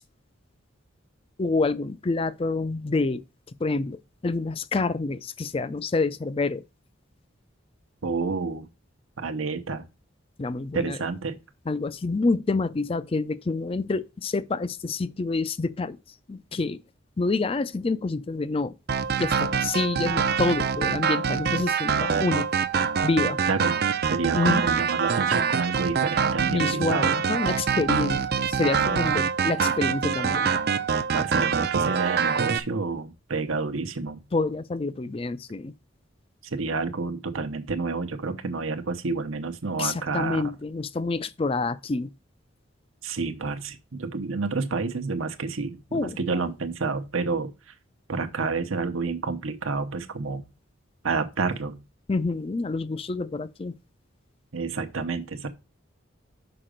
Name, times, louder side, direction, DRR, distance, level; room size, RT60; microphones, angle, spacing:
voice 1, 1.4-3.2 3.6-6.6 10.4-11.0 11.7-16.0 16.3-16.8 17.2-18.7 19.2-22.5 23.0-23.4 24.3-24.6 26.5-30.5 34.3-35.7 39.8-42.1 45.9-46.4 52.1-53.7, left 3 dB, 30° left, 0.4 m, -27 dB
voice 2, 8.0-8.7 9.2-9.9 10.7-11.4 23.5-23.8 24.1-27.1 29.1-29.2 31.1-34.2 36.4-40.4 43.0-47.7 48.1-50.4 51.0-51.8 54.5-55.5, right 4 dB, 85° right, 0.9 m, -29 dB
sound 1, 18.9-32.6, right 6 dB, 50° right, 0.5 m, -25 dB
6.0 x 5.0 x 5.0 m
head